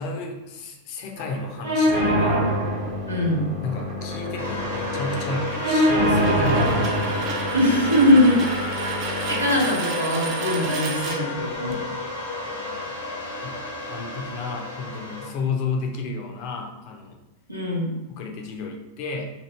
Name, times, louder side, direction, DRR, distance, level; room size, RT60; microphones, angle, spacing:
voice 1, 0.0-2.5 3.6-6.7 12.4-12.9 13.4-13.6 13.8-17.2 18.1-19.3, left 3 dB, 45° left, 2 dB, 0.5 m, -32 dB
sound 1, 1.2-11.7, right 3 dB, 40° right, 0.5 m, -33 dB
sound 2, 1.6-9.6, equal, 65° right, 0.9 m, -25 dB
voice 2, 3.1-3.4 7.5-8.4 8.7-11.8 17.5-17.9, left 1 dB, 90° right, -4 dB, 0.8 m, -21 dB
sound 3, 4.4-15.3, left 2 dB, 75° left, 1.0 m, -32 dB
2.9 x 2.4 x 3.1 m, 0.97 s
figure-of-eight pair, 90°, 0 cm